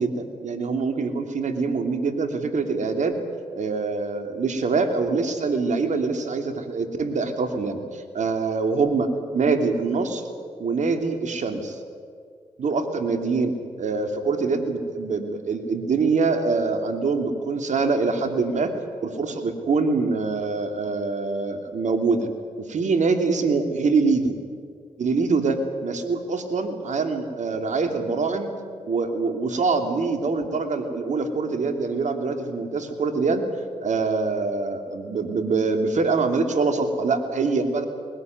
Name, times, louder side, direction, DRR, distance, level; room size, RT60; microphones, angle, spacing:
voice 1, 0.0-3.2 3.5-10.2 10.6-11.8 12.6-18.7 19.0-22.3 22.7-24.4 25.0-28.5 28.8-33.4 33.8-37.8, right 4 dB, 65° right, 7 dB, 2.9 m, -24 dB
20.5 x 18.0 x 9.4 m, 2.2 s
supercardioid pair, 45°, 13 cm